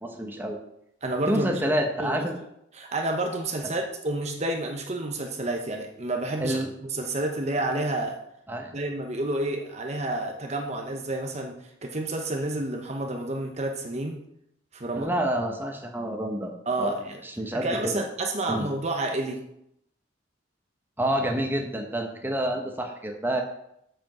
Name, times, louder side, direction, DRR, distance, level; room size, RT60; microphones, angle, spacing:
voice 1, 0.0-0.6 1.3-2.4 6.4-6.7 8.5-8.8 15.0-18.0 18.5-18.7 21.0-23.4, right 1 dB, 10° right, 2 dB, 1.0 m, -28 dB
voice 2, 1.0-1.5 2.0-2.3 2.7-8.2 8.7-11.6 11.8-14.2 14.7-15.1 16.7-17.2 17.6-19.4, right 2 dB, 35° right, 3 dB, 0.9 m, -29 dB
7.7 x 7.1 x 5.4 m, 0.77 s
head